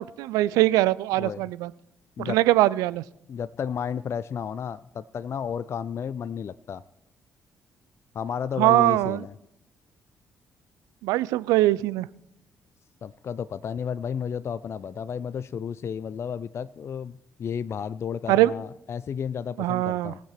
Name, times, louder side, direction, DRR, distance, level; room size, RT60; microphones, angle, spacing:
voice 1, 0.0-1.7 2.2-3.0 8.6-9.2 11.0-12.1 18.3-18.5 19.6-20.1, right 16 dB, 70° right, 19 dB, 0.4 m, -22 dB
voice 2, 3.3-6.8 8.1-9.3 13.0-20.2, left 7 dB, 45° left, 16 dB, 0.4 m, -32 dB
18.5 x 7.4 x 4.5 m, 0.82 s
figure-of-eight pair, 40°, 6 cm